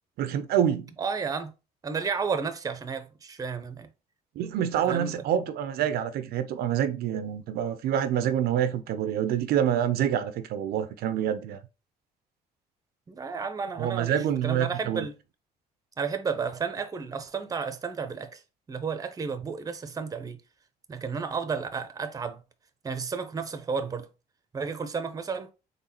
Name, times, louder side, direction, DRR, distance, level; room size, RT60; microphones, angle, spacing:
voice 1, 0.2-0.9 4.4-11.6 13.8-15.0, right 10 dB, 65° right, 0.5 m, -27 dB
voice 2, 1.0-1.5 1.8-3.9 4.8-5.2 13.1-15.1 16.0-18.4 18.7-20.4 20.9-22.4 22.8-24.1 24.5-25.5, right 5 dB, 20° right, 0.5 m, -32 dB
3.9 x 3.3 x 2.8 m
cardioid pair, 110°, 17 cm